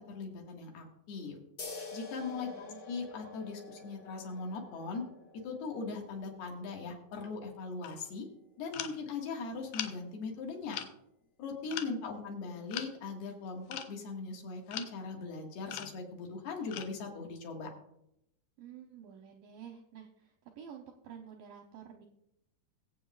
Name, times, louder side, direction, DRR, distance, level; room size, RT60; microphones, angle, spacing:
voice 1, 0.0-1.4 1.9-2.5 2.9-5.1 5.4-8.3 8.6-10.8 11.4-17.7, left 4 dB, 70° left, 0 dB, 3.6 m, -40 dB
sound 1, 1.6-8.7, left 3 dB, 45° left, 1.6 m, -49 dB
voice 2, 2.3-2.8 11.6-12.2 18.6-22.1, right 8 dB, 80° right, 2 dB, 2.0 m, -50 dB
sound 2, 7.8-8.1 8.7-9.0 9.7-10.0 10.7-10.9 11.7-11.9 12.7-12.9 13.7-14.0 14.7-14.9 15.7-16.1 16.7-17.0, left 10 dB, 90° left, 1.9 m, -40 dB
22.5 x 8.1 x 2.4 m, 0.79 s
omnidirectional pair, 4.8 m